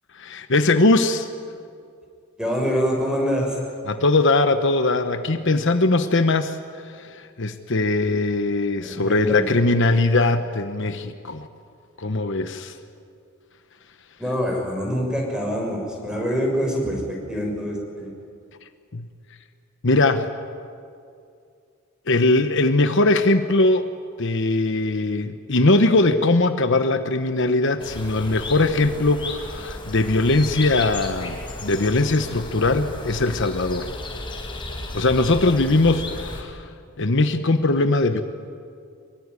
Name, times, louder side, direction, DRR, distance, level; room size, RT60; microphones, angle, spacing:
voice 1, 0.1-1.3 3.9-6.6 6.8-11.5 12.0-12.8 18.9-19.1 19.8-20.3 22.1-23.9 24.2-33.9 34.9-36.7 37.0-38.2, left 2 dB, 60° left, 8 dB, 1.1 m, -20 dB
voice 2, 2.4-3.6 8.8-9.5 14.2-18.1 35.4-35.5, equal, 5° right, 0 dB, 6.4 m, -25 dB
sound 1, 27.8-36.4, left 2 dB, 25° left, 4.1 m, -34 dB
24.5 x 23.0 x 9.8 m, 2.4 s
head